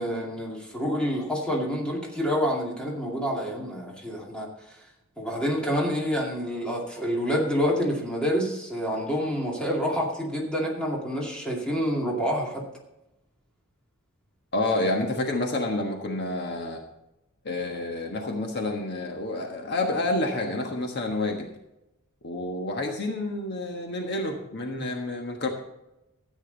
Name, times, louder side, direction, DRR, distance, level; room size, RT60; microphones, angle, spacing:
voice 1, 0.0-4.5 5.2-12.6 24.8-24.9, equal, 5° left, -3 dB, 2.4 m, -28 dB
voice 2, 14.5-16.8 17.4-21.5 22.2-25.5, left 2 dB, 50° left, 2 dB, 1.4 m, -29 dB
13.5 x 8.9 x 4.0 m, 0.91 s
head